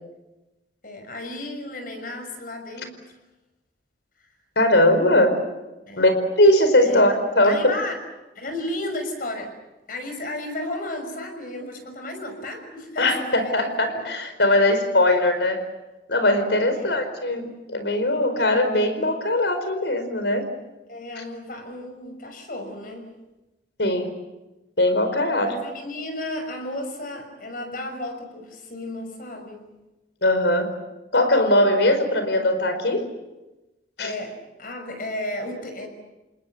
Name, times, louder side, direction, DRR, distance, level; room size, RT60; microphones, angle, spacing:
voice 1, 0.8-3.0 5.9-6.1 6.8-7.0 7.4-8.0 8.3-9.5 9.9-14.0 16.7-17.0 20.9-23.1 25.4-29.7 34.0-35.9, left 1 dB, 55° left, 6 dB, 6.1 m, -33 dB
voice 2, 4.6-5.4 6.0-7.6 13.0-15.6 16.1-20.5 23.8-24.1 24.8-25.5 30.2-30.7 31.1-33.0 34.0-34.1, left 1 dB, 85° left, 9 dB, 4.8 m, -20 dB
28.5 x 20.0 x 7.9 m, 1.0 s
head